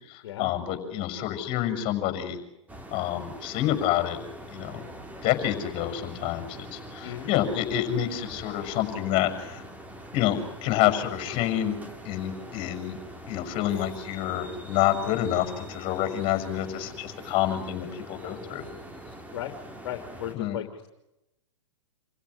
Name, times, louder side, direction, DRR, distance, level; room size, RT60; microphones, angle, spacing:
voice 1, 0.0-2.4 2.9-4.2 4.5-4.8 5.2-9.6 10.1-11.8 12.0-13.0 13.3-18.6 20.3-20.6, left 12 dB, 35° left, 7 dB, 6.1 m, -28 dB
sound 1, 2.7-20.4, right 1 dB, 10° right, 2.9 m, -43 dB
voice 2, 7.0-7.3 19.3-19.5 19.8-20.9, left 12 dB, 55° left, 5 dB, 2.9 m, -36 dB
28.0 x 16.5 x 9.8 m, 0.92 s
hypercardioid pair, 125°, 16 cm